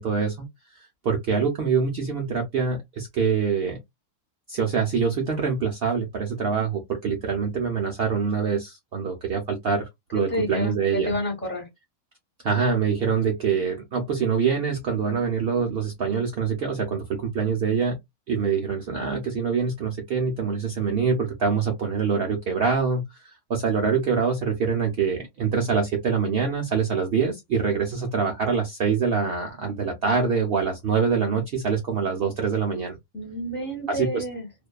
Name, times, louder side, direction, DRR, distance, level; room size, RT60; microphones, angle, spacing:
voice 1, 0.0-3.8 4.5-11.1 12.4-18.0 18.3-33.0 33.9-34.2, right 5 dB, 85° right, 0.5 m, -25 dB
voice 2, 10.1-11.7 33.1-34.5, equal, 10° left, 0.9 m, -29 dB
2.5 x 2.2 x 2.2 m
omnidirectional pair, 1.6 m